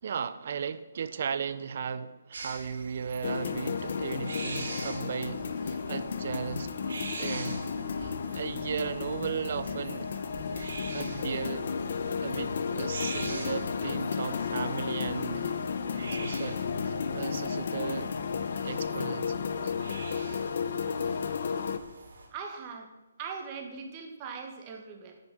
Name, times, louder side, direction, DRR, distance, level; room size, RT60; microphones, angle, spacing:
voice 1, 0.0-6.7 7.2-7.6 8.0-10.1 10.9-11.7 12.2-15.5 16.1-18.1 18.6-19.7, right 7 dB, 50° right, 14 dB, 0.7 m, -36 dB
sound 1, 2.3-22.3, right 3 dB, 70° right, 4.7 m, -45 dB
sound 2, 3.2-21.8, left 6 dB, 55° left, 0.9 m, -33 dB
voice 2, 22.3-22.9 23.2-25.2, right 5 dB, 25° right, 3 dB, 1.9 m, -40 dB
10.5 x 5.6 x 8.6 m, 1.1 s
hypercardioid pair, 155°, 0 cm